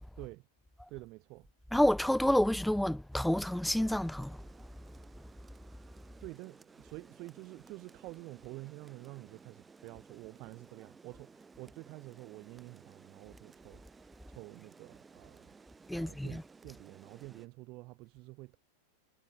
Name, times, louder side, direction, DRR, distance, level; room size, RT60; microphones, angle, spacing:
voice 1, 0.2-0.5 0.9-1.5 6.2-15.5 15.9-18.6, right 23 dB, 40° right, 3.6 m, -49 dB
voice 2, 1.7-4.4 15.9-16.4, left 1 dB, ahead, 0.6 m, -29 dB
Rain, 3.1-17.5, right 4 dB, 15° right, 4.2 m, -58 dB
figure-of-eight pair, 90°, 0 cm